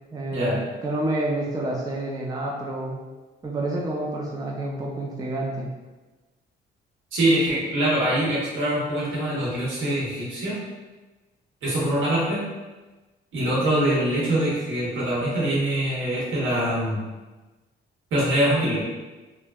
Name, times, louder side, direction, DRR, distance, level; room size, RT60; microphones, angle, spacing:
voice 1, 0.1-3.0 3.4-5.7, right 1 dB, 20° right, -2 dB, 0.4 m, -29 dB
voice 2, 7.1-10.5 11.6-12.4 13.3-17.0 18.1-18.8, right 1 dB, 75° right, -6 dB, 1.1 m, -23 dB
3.3 x 2.1 x 2.3 m, 1.2 s
cardioid pair, 90°, 20 cm